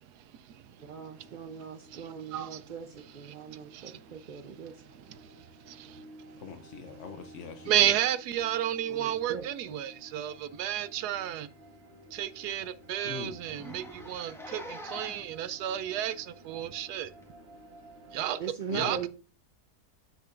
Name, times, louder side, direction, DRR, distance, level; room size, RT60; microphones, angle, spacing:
voice 1, 0.0-0.8 1.2-1.3 1.9-2.6 3.3-6.1 7.7-11.5 12.1-17.1 18.1-18.4 18.7-19.1, right 11 dB, 85° right, 1.2 m, -33 dB
sound 1, 0.8-18.5, right 1 dB, 45° right, 1.4 m, -54 dB
voice 2, 0.8-4.8 8.9-9.8 18.4-19.1, right 6 dB, 65° right, 0.4 m, -40 dB
voice 3, 6.4-7.9 13.0-13.4 18.7-19.0, left 6 dB, 60° left, 0.9 m, -42 dB
Zipper (clothing), 10.8-10.9 11.3-11.4 11.8-11.9 12.2-12.3 12.6-12.7 13.4-15.4 16.1-16.2 17.2-17.3, equal, ahead, 1.6 m, -44 dB
7.8 x 6.6 x 2.5 m
omnidirectional pair, 1.7 m